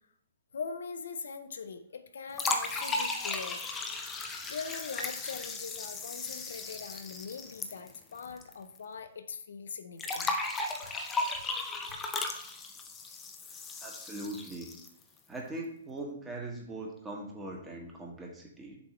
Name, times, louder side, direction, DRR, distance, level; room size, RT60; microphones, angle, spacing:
voice 1, 0.5-3.6 4.5-10.4 11.9-12.0, left 5 dB, 70° left, 9 dB, 0.6 m, -41 dB
sound 1, 2.3-8.5 8.8-8.9 10.0-15.0, left 3 dB, 15° left, 0.8 m, -36 dB
voice 2, 13.4-14.7 15.3-18.8, right 2 dB, 10° right, -1 dB, 1.7 m, -41 dB
6.9 x 3.5 x 4.4 m, 0.71 s
figure-of-eight pair, 125°, 0 cm